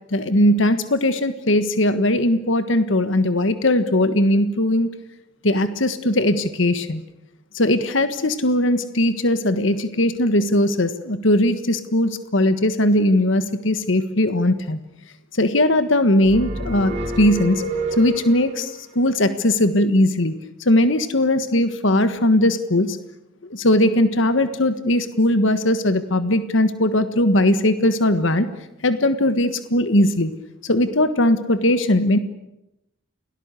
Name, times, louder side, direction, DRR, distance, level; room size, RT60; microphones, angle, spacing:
voice 1, 0.1-4.9 5.4-7.0 7.5-14.8 15.4-17.6 18.0-20.3 20.6-23.0 23.5-28.5 28.8-30.3 30.6-32.2, left 1 dB, 75° left, 11 dB, 1.5 m, -19 dB
sound 1, 16.2-18.7, right 1 dB, 35° right, 4.4 m, -28 dB
29.5 x 18.5 x 8.3 m, 0.89 s
head